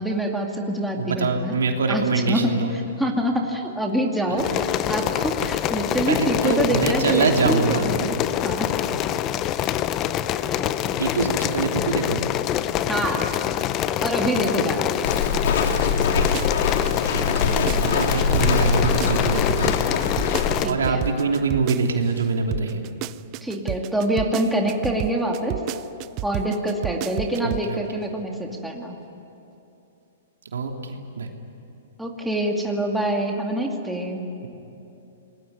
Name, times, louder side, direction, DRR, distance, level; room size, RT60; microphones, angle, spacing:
voice 1, 0.0-1.6 1.9-2.5 3.0-4.5 4.9-8.2 8.4-8.7 10.3-10.6 12.9-13.3 14.0-15.2 20.6-21.0 23.4-25.6 26.2-29.0 32.0-34.2, right 1 dB, ahead, 0 dB, 2.4 m, -25 dB
voice 2, 1.0-2.7 4.3-4.4 6.1-8.1 11.0-12.2 17.0-19.7 20.0-20.2 20.6-22.8 27.4-27.8 30.5-31.3, right 4 dB, 90° right, 3 dB, 3.1 m, -24 dB
sound 1, 4.4-20.7, left 11 dB, 30° left, 0.8 m, -25 dB
Walk footsteps, 15.0-20.5, left 5 dB, 65° left, 3.1 m, -24 dB
sound 2, 16.2-16.9 17.3-22.3 22.5-27.7 28.0-28.1, right 18 dB, 35° right, 0.5 m, -31 dB
27.0 x 20.5 x 9.6 m, 2.8 s
hypercardioid pair, 145°, 0 cm